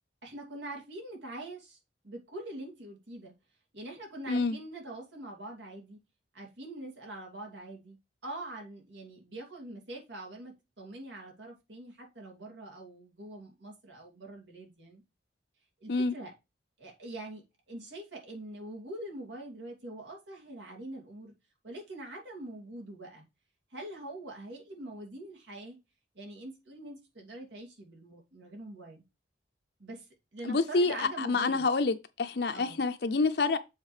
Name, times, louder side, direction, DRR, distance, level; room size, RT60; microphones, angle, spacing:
voice 1, 0.2-1.8 2.0-3.3 3.7-6.0 6.3-8.0 8.2-15.0 15.8-16.3 16.8-21.3 21.6-23.3 23.7-25.8 26.1-29.0 29.8-31.7 32.5-32.8, right 1 dB, 90° right, 2.8 m, -44 dB
voice 2, 30.5-33.6, left 3 dB, 65° left, 0.6 m, -27 dB
7.3 x 3.7 x 4.8 m
head